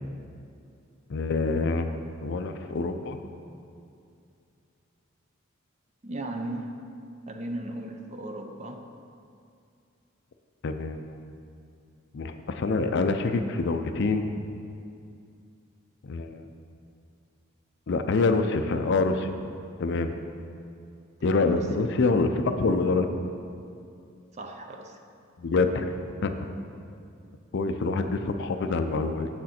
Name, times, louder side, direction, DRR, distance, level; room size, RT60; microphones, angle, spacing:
voice 1, 1.1-3.2 10.6-11.1 12.1-14.2 16.0-16.4 17.9-19.3 19.8-20.1 21.2-23.1 25.4-25.9 26.2-26.3 27.5-29.3, left 3 dB, 55° left, 7 dB, 0.4 m, -26 dB
voice 2, 6.0-6.8 7.3-8.9 21.2-21.8 22.2-22.3 24.3-25.0 27.2-27.4, right 1 dB, 30° right, 5 dB, 0.5 m, -37 dB
7.9 x 6.3 x 4.3 m, 2.5 s
head